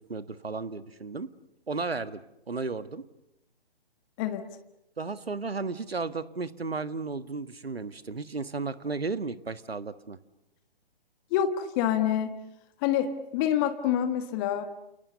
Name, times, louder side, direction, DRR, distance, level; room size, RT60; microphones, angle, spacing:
voice 1, 0.1-1.3 1.7-2.2 2.5-3.0 5.0-10.2, right 4 dB, 75° right, 13 dB, 1.6 m, -34 dB
voice 2, 11.3-12.3 12.8-14.7, left 10 dB, 20° left, 8 dB, 1.5 m, -27 dB
29.5 x 29.0 x 6.9 m, 0.84 s
figure-of-eight pair, 135°, 30 cm